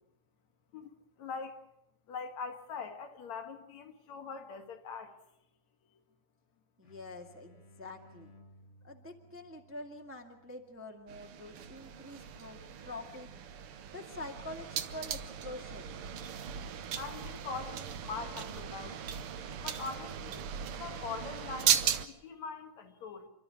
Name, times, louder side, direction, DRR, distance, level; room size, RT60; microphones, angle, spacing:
voice 1, 0.7-1.6 2.1-5.1 17.0-19.1 19.6-23.3, left 5 dB, 70° left, 3.1 m, -42 dB
sound 1, 6.8-12.3, equal, 30° left, 1.5 m, -61 dB
voice 2, 6.8-8.3 8.8-13.3 13.9-16.0, left 2 dB, 5° right, 1.5 m, -46 dB
sound 2, 11.1-22.1, right 9 dB, 65° right, 1.6 m, -37 dB
29.0 x 12.5 x 9.9 m
omnidirectional pair, 3.4 m